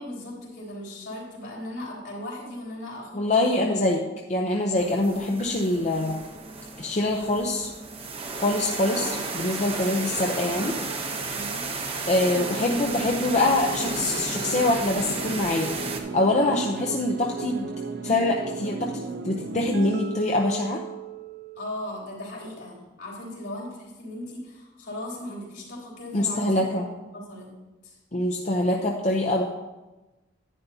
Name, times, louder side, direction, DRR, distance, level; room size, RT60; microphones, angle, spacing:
voice 1, 0.0-3.6 11.3-11.7 21.5-26.8 27.1-27.5 27.8-28.0, left 1 dB, 70° left, -4 dB, 3.2 m, -37 dB
voice 2, 3.1-4.0 4.3-6.2 6.8-7.7 8.3-10.8 12.1-15.7 16.1-17.7 18.0-20.8 26.1-26.9 28.1-29.4, left 2 dB, 40° left, 0 dB, 0.7 m, -24 dB
sound 1, 4.8-16.0, right 3 dB, 30° right, 0.9 m, -33 dB
sound 2, 13.3-21.8, right 4 dB, 55° right, 0.5 m, -35 dB
10.5 x 9.4 x 2.8 m, 1.1 s
head